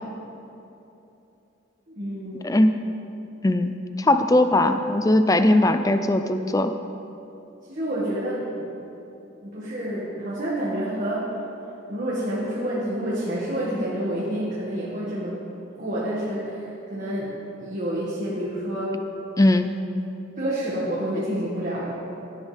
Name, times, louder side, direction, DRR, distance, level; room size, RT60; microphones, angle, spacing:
voice 1, 1.9-2.6 7.7-8.7 9.4-11.3 11.9-15.4 15.8-19.1 20.4-21.9, right 1 dB, 45° right, -8 dB, 2.1 m, -28 dB
voice 2, 2.4-2.8 3.4-6.7 19.4-19.7, left 1 dB, 20° left, 9 dB, 0.5 m, -19 dB
16.5 x 11.0 x 3.5 m, 2.9 s
head